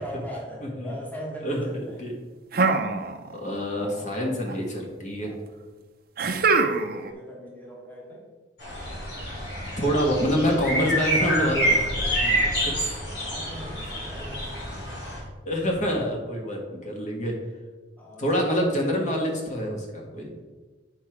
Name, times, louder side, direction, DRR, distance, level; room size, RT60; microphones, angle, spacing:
voice 1, 0.0-2.0 5.2-5.4 6.5-8.3 13.1-14.6 18.0-18.4, equal, 10° left, -2 dB, 1.3 m, -40 dB
voice 2, 0.6-0.9 1.4-2.2 3.3-5.3 9.8-13.0 15.4-17.4 18.2-20.4, equal, 40° left, 0 dB, 1.5 m, -27 dB
sound 1, 2.5-3.5 3.8-4.5 6.2-7.1, right 4 dB, 55° right, 0.6 m, -24 dB
sound 2, 8.6-15.2, right 1 dB, 65° left, 2.8 m, -27 dB
8.6 x 4.6 x 4.9 m, 1.3 s
head